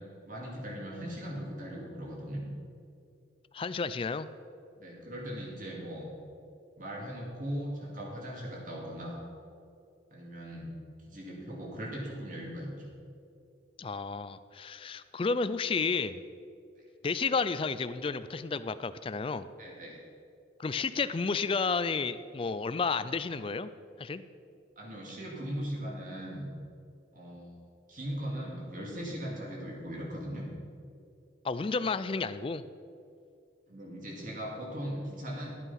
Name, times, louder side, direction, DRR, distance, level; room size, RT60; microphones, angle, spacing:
voice 1, 0.3-2.4 4.7-6.1 6.8-9.2 10.1-10.7 11.1-12.9 19.6-20.0 24.8-26.4 27.1-27.5 27.9-30.4 33.7-35.5, equal, 45° right, -2 dB, 2.5 m, -39 dB
voice 2, 3.5-4.3 13.8-16.2 17.0-19.5 20.6-23.7 24.0-24.2 31.4-32.6, left 4 dB, 30° left, 14 dB, 0.3 m, -31 dB
12.5 x 8.2 x 5.6 m, 2.5 s
head